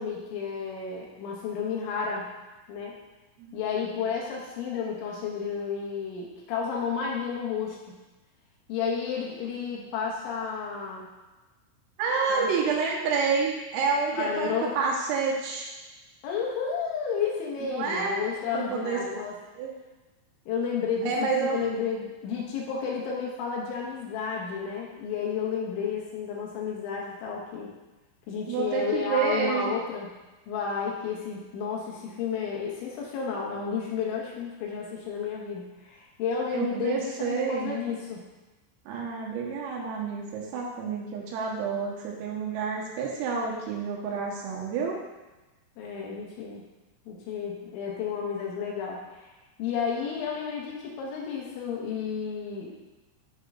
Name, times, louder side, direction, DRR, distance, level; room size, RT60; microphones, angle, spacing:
voice 1, 0.0-2.3 2.7-3.0 3.5-8.0 8.7-11.1 12.3-12.5 14.1-14.7 16.2-19.3 20.5-27.7 28.3-30.1 30.5-38.2 45.8-46.6 47.1-49.3 49.6-52.7, left 6 dB, 75° left, -2 dB, 3.4 m, -32 dB
voice 2, 12.0-15.7 17.7-18.2 18.5-19.0 19.6-19.7 21.1-21.7 28.5-29.7 36.5-37.8 38.9-45.0, right 5 dB, 90° right, -2 dB, 4.1 m, -29 dB
10.5 x 3.8 x 5.5 m, 1.1 s
omnidirectional pair, 5.8 m